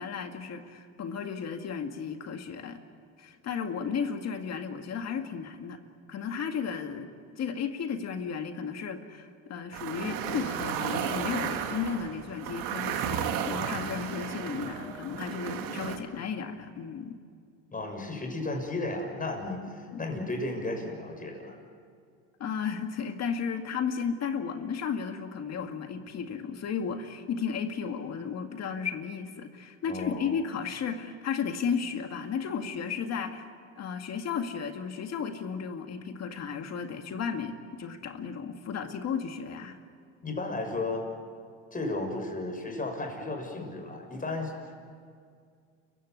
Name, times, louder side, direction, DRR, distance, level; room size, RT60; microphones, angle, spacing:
voice 1, 0.0-2.8 3.2-5.8 6.1-7.1 7.4-17.2 19.9-20.0 22.4-33.5 33.8-39.8, left 6 dB, 50° left, 6 dB, 2.1 m, -34 dB
sound 1, 9.7-16.0, right 8 dB, 75° right, 2.4 m, -33 dB
voice 2, 17.7-21.6 29.9-30.3 40.2-41.0 41.7-44.7, left 2 dB, 25° left, 3 dB, 6.4 m, -34 dB
29.5 x 16.0 x 9.6 m, 2.2 s
supercardioid pair, 95°, 35 cm